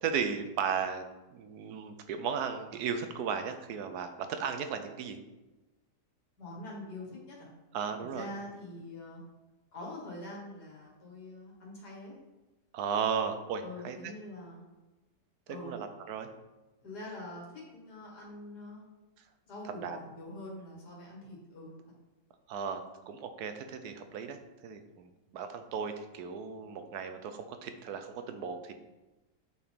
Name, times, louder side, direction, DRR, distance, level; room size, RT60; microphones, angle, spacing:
voice 1, 0.0-1.0 1.3-5.2 7.7-8.3 12.7-14.1 15.6-16.3 19.7-20.0 22.5-24.4 24.6-28.7, right 6 dB, 75° right, 8 dB, 1.1 m, -35 dB
voice 2, 6.4-7.5 8.0-9.2 9.7-12.1 13.6-14.7 15.5-15.7 16.8-18.8 19.5-21.7, left 1 dB, 75° left, -3 dB, 2.5 m, -44 dB
8.4 x 4.4 x 3.6 m, 1.1 s
omnidirectional pair, 1.8 m